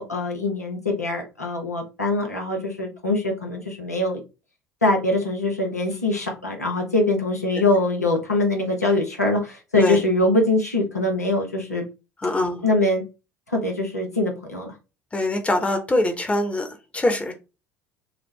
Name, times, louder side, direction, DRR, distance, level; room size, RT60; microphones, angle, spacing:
voice 1, 0.0-4.2 4.8-11.8 12.6-13.0 13.5-14.7, left 2 dB, 90° left, 1 dB, 0.8 m, -23 dB
voice 2, 12.2-12.6 15.1-17.3, left 1 dB, 15° left, 5 dB, 0.9 m, -23 dB
3.7 x 2.1 x 3.2 m, 0.29 s
figure-of-eight pair, 65°, 8 cm